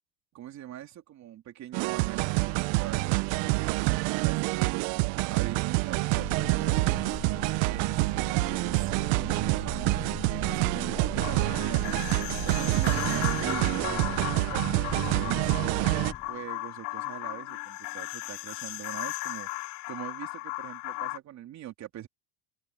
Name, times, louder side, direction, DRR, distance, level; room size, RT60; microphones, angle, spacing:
voice 1, 0.3-7.2 7.6-12.1 12.4-15.9 16.3-22.1, right 12 dB, 40° right, 3.2 m, -42 dB
sound 1, 1.7-16.1, right 22 dB, 60° right, 1.1 m, -27 dB
sound 2, 6.1-16.5, left 7 dB, 25° left, 5.9 m, -41 dB
sound 3, 11.2-21.2, left 23 dB, 60° left, 0.9 m, -36 dB
open air
supercardioid pair, 140°, 44 cm